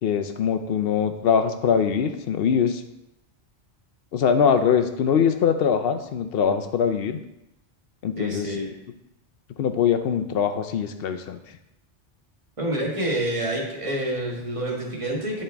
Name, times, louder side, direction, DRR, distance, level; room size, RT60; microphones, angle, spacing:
voice 1, 0.0-2.8 4.1-7.2 8.0-8.5 9.6-11.4, left 7 dB, 60° left, 8 dB, 0.8 m, -22 dB
voice 2, 8.2-8.7 12.6-15.4, right 1 dB, 30° right, -2 dB, 1.6 m, -27 dB
10.5 x 4.3 x 3.4 m, 0.88 s
omnidirectional pair, 1.2 m